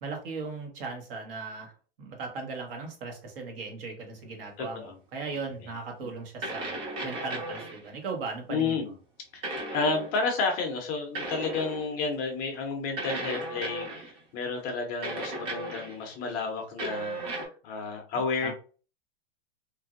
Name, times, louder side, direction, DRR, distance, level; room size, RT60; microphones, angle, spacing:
voice 1, 0.0-1.7 2.0-8.9 18.1-18.5, right 4 dB, 60° right, 2 dB, 1.2 m, -38 dB
voice 2, 4.6-4.9 6.0-6.1 8.5-8.9 9.3-18.5, left 4 dB, 30° left, 3 dB, 0.5 m, -31 dB
sound 1, 5.3-5.4 6.4-7.9 9.4-10.2 11.1-12.1 13.0-14.2 15.0-16.1 16.8-17.5, right 1 dB, 40° right, 1.2 m, -35 dB
3.0 x 2.5 x 2.5 m, 0.38 s
supercardioid pair, 155°, 31 cm